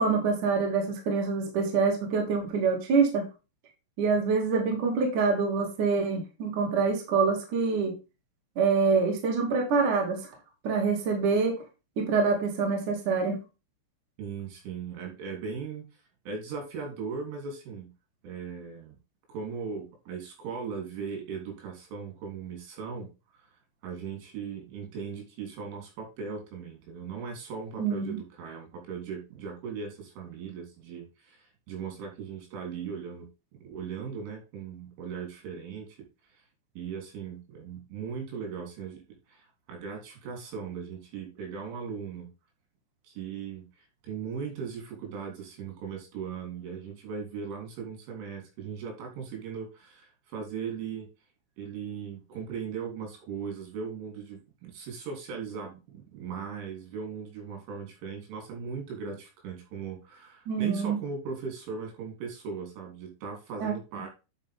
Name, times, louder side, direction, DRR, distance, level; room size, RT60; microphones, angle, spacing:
voice 1, 0.0-3.2 4.0-7.9 8.6-10.2 10.6-11.6 12.0-13.4 27.8-28.2 60.5-61.0 63.6-63.7, right 4 dB, 50° right, 0 dB, 3.1 m, -26 dB
voice 2, 14.2-15.8 16.3-17.9 18.2-19.0 19.3-23.1 23.4-23.5 23.8-36.1 36.3-36.4 36.8-42.3 43.0-43.7 44.0-51.1 51.6-64.1, right 6 dB, 70° right, 2 dB, 5.8 m, -38 dB
10.5 x 5.8 x 3.6 m, 0.29 s
omnidirectional pair, 6.0 m